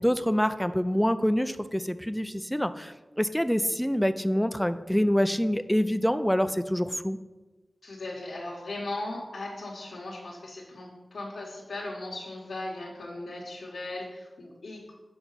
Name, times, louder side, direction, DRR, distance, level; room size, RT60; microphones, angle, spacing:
voice 1, 0.0-7.2, equal, 5° left, 12 dB, 0.4 m, -26 dB
voice 2, 7.8-14.9, left 2 dB, 90° left, -5 dB, 1.4 m, -38 dB
7.0 x 4.7 x 5.6 m, 1.1 s
wide cardioid pair, 75°, 0 cm